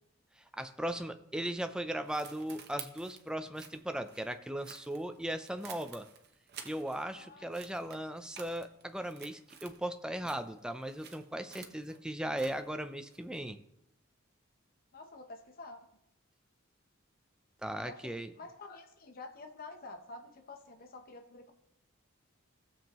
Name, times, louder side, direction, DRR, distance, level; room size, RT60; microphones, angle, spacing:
voice 1, 0.4-6.1 6.6-13.6 17.6-18.3, right 1 dB, 5° right, 9 dB, 0.5 m, -38 dB
sound 1, 1.6-7.2 7.5-9.9 10.2-13.6, right 7 dB, 55° right, 0.9 m, -52 dB
voice 2, 7.2-7.5 14.9-15.9 17.8-21.5, left 3 dB, 45° left, 4 dB, 0.8 m, -49 dB
16.0 x 7.3 x 3.0 m, 0.81 s
head